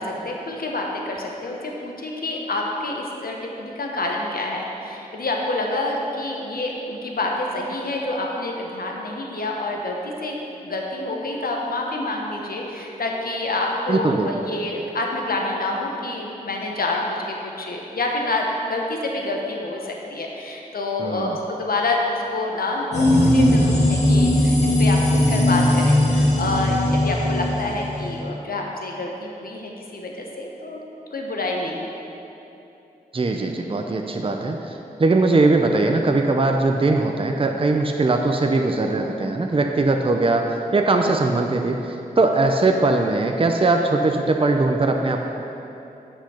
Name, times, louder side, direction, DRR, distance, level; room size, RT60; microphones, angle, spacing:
voice 1, 0.0-10.4 10.6-30.8 31.1-31.9, left 2 dB, 65° left, 0 dB, 1.2 m, -27 dB
voice 2, 13.9-14.3 21.0-21.4 33.1-34.6 35.0-41.8 42.2-45.2, right 2 dB, 35° right, 3 dB, 0.7 m, -20 dB
sound 1, 22.9-28.2, left 1 dB, 45° left, 2.1 m, -18 dB
8.1 x 6.1 x 5.7 m, 3.0 s
cardioid pair, 45°, 16 cm